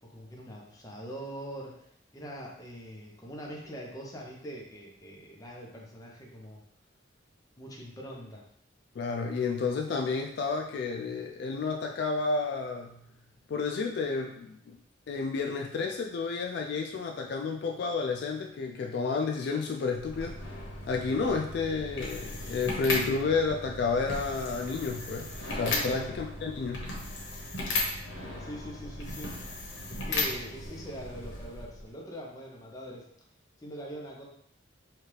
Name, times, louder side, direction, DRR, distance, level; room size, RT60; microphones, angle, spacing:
voice 1, 0.0-1.8 2.1-6.6 7.6-8.4 25.6-25.9 28.4-29.4 29.9-33.0 33.6-34.2, equal, 20° left, -3 dB, 0.7 m, -43 dB
voice 2, 9.0-13.0 13.5-14.8 15.1-20.4 20.9-26.9, left 4 dB, 60° left, 1 dB, 0.3 m, -31 dB
sound 1, 19.9-31.9, left 2 dB, 85° left, 1.0 m, -36 dB
4.5 x 2.4 x 3.2 m, 0.70 s
head